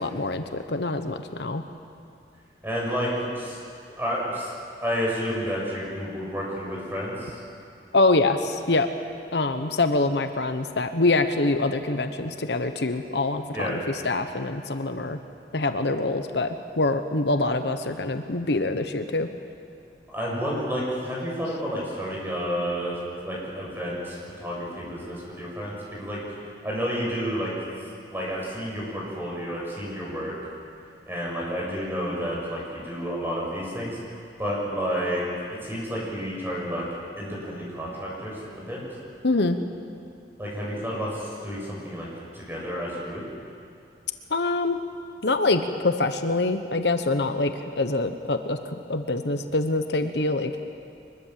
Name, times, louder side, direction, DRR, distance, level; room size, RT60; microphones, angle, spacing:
voice 1, 0.0-1.6 7.9-8.9 9.3-15.2 15.5-19.3 39.2-39.6 44.3-44.8 45.2-50.5, left 2 dB, 75° left, 8 dB, 1.1 m, -25 dB
voice 2, 2.6-3.6 4.0-4.5 4.8-7.4 13.5-13.8 20.1-26.2 26.6-27.5 28.1-30.3 31.1-34.0 34.4-35.2 35.6-36.8 37.2-38.8 40.4-42.1 42.3-43.2, equal, 10° right, -4 dB, 7.2 m, -30 dB
24.0 x 21.5 x 7.6 m, 2.5 s
head